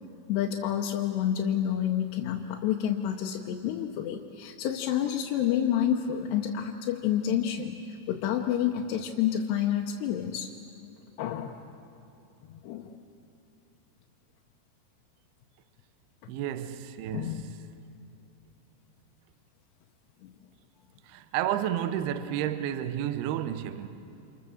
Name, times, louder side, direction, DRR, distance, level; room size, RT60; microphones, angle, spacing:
voice 1, 0.3-7.8 8.1-10.5 11.2-11.6 12.5-12.9 17.1-17.5 20.2-20.3, left 10 dB, 75° left, 2.9 m, -29 dB
voice 2, 16.3-17.4 21.0-23.9, right 11 dB, 75° right, 2.5 m, -31 dB
29.0 x 27.5 x 7.2 m
omnidirectional pair, 5.2 m